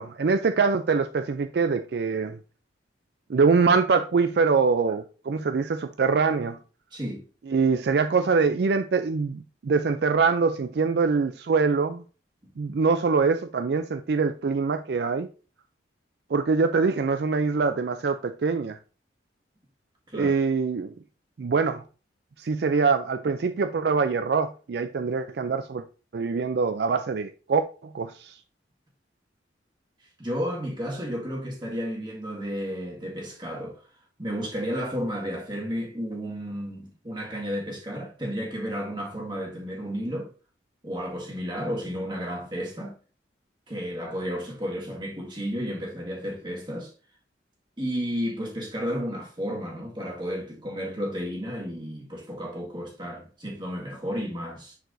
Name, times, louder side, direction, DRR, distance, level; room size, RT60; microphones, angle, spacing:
voice 1, 0.0-2.4 3.3-6.6 7.5-12.0 12.6-15.3 16.3-18.8 20.1-20.9 21.4-21.8 22.4-25.8 26.1-27.6 27.9-28.4, right 4 dB, 60° right, 0.4 m, -24 dB
voice 2, 6.9-7.2 20.1-20.3 30.2-33.8 34.2-40.3 40.8-43.0 43.7-46.9 47.8-54.8, equal, 25° right, 1.8 m, -32 dB
10.0 x 4.7 x 2.6 m
head